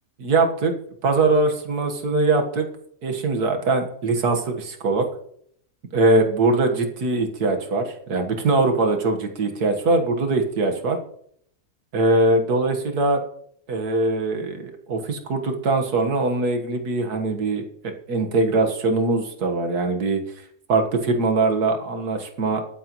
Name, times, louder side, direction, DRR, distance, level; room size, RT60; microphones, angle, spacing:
voice 1, 0.2-0.7 1.0-2.7 3.0-5.1 5.9-11.0 11.9-13.2 13.7-20.2 20.7-22.6, right 3 dB, 80° right, 4 dB, 2.0 m, -22 dB
20.5 x 9.2 x 3.1 m, 0.67 s
omnidirectional pair, 1.6 m